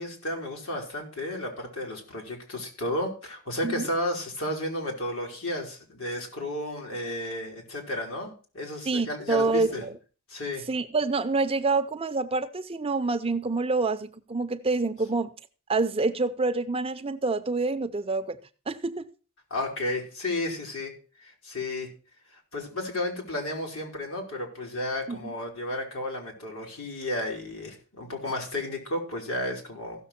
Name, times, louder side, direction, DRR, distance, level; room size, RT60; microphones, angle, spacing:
voice 1, 0.0-9.8 10.3-10.6 19.5-20.9 21.2-21.9 22.5-30.1, left 1 dB, 75° left, 4.0 m, -33 dB
voice 2, 8.9-10.0 10.7-15.3 15.7-18.4 18.7-19.1 25.1-25.3, right 3 dB, 25° right, 0.6 m, -27 dB
15.5 x 6.6 x 4.3 m
head